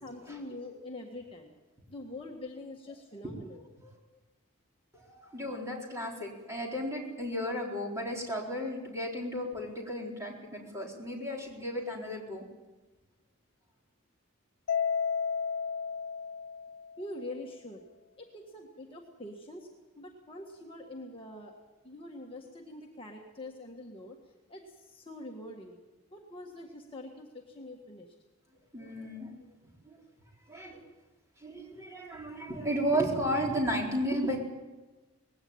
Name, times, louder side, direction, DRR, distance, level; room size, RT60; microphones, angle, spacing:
voice 1, 0.0-1.5 1.9-3.6 17.0-17.8 18.2-19.7 20.0-21.5 21.8-24.2 24.5-25.8 26.1-28.1, left 1 dB, 25° left, 0 dB, 1.7 m, -44 dB
voice 2, 4.9-12.4 28.7-29.4 29.9-30.0 30.5-30.8 31.4-34.4, equal, 15° right, -1 dB, 4.1 m, -34 dB
Mallet percussion, 14.7-17.1, left 6 dB, 70° left, 0.6 m, -32 dB
20.0 x 16.5 x 8.8 m, 1.2 s
head